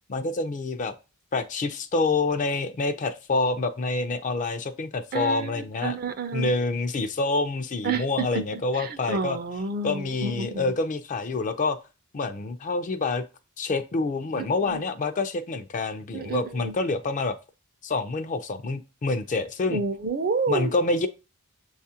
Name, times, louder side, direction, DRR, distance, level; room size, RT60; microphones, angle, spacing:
voice 1, 0.1-0.9 1.3-6.0 6.3-9.4 9.8-11.8 12.1-13.2 13.6-17.4 17.8-19.8 20.5-21.1, left 3 dB, 35° left, 0.4 m, -27 dB
voice 2, 5.1-6.5 7.8-8.3 8.8-10.7 14.7-14.8 16.1-16.7 19.7-20.7, right 4 dB, 45° right, 0.5 m, -29 dB
7.0 x 2.4 x 2.7 m
head